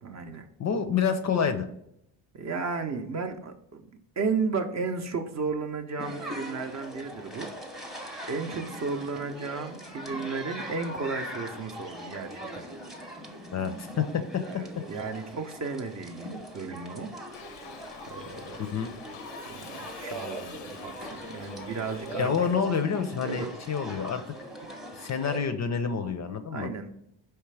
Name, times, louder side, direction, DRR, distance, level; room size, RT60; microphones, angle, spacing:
voice 1, 0.0-0.4 2.3-3.9 4.2-7.5 7.8-12.7 14.5-17.1 18.1-18.6 19.5-22.3 23.2-23.5 25.0-25.1 26.5-26.9, right 4 dB, 35° right, 6 dB, 0.6 m, -34 dB
voice 2, 0.6-1.7 13.5-14.6 18.6-18.9 22.2-24.2 24.9-26.7, left 6 dB, 40° left, 9 dB, 0.5 m, -28 dB
sound 1, 6.0-25.4, right 1 dB, ahead, 0.7 m, -41 dB
Shout / Livestock farm animals working animals, 17.3-22.3, left 8 dB, 90° left, 0.6 m, -47 dB
4.6 x 3.3 x 3.2 m, 0.76 s
cardioid pair, 80°, 46 cm